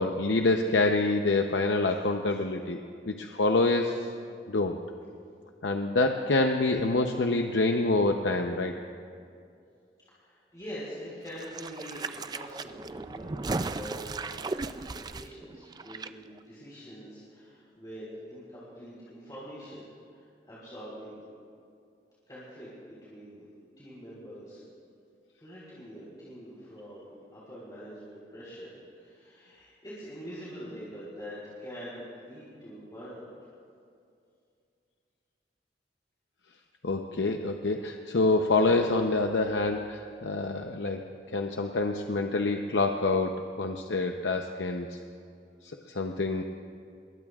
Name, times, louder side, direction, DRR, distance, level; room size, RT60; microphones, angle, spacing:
voice 1, 0.0-2.8 3.1-4.0 4.5-4.8 5.6-8.8 36.8-41.0 41.3-45.0 45.9-46.4, left 3 dB, 90° left, 3 dB, 0.8 m, -26 dB
voice 2, 10.1-19.8 20.1-21.2 22.3-23.5 23.8-24.6 25.4-33.5, equal, 20° left, -8 dB, 3.9 m, -44 dB
sound 1, 11.3-16.1 16.4-16.5, right 3 dB, 20° right, 0.3 m, -36 dB
27.0 x 21.5 x 2.4 m, 2.4 s
head